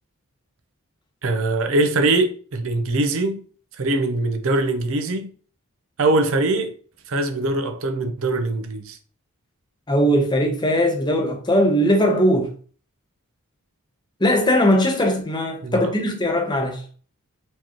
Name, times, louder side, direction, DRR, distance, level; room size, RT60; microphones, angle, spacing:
voice 1, 1.2-3.4 3.8-5.3 6.0-6.7 7.1-9.0 15.6-15.9, right 2 dB, 65° right, 0.6 m, -22 dB
voice 2, 9.9-12.5 14.2-16.8, equal, 20° left, 0.8 m, -19 dB
4.5 x 3.0 x 2.9 m
head